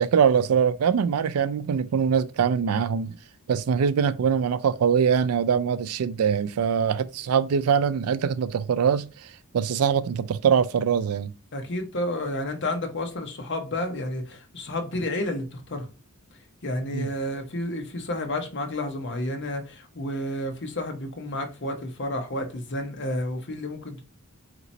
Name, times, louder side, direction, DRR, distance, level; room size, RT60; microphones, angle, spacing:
voice 1, 0.0-3.1 3.5-11.3 16.9-17.1, right 7 dB, 85° right, 0.4 m, -23 dB
voice 2, 11.5-15.9 16.6-24.0, left 1 dB, 55° left, 0.9 m, -31 dB
4.1 x 2.9 x 2.7 m
head